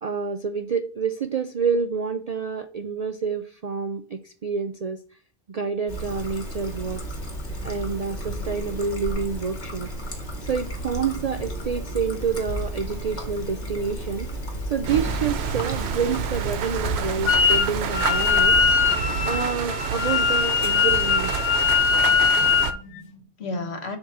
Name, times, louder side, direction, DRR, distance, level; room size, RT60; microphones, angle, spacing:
voice 1, 0.0-5.0 5.5-7.0 7.6-9.9 10.5-14.3 14.7-18.6 19.2-21.3, right 6 dB, 55° right, 0.4 m, -28 dB
Trickle dribble, 5.9-18.6, equal, 40° left, 1.5 m, -33 dB
voice 2, 7.4-7.9 8.2-8.5 10.4-10.5 21.9-24.0, left 2 dB, 65° left, 1.4 m, -37 dB
sound 1, 14.8-22.7, right 7 dB, 70° right, 0.9 m, -29 dB
Wind instrument woodwind instrument, 17.3-17.7 17.9-22.7, left 6 dB, 85° left, 1.1 m, -21 dB
7.2 x 2.8 x 5.9 m
omnidirectional pair, 1.2 m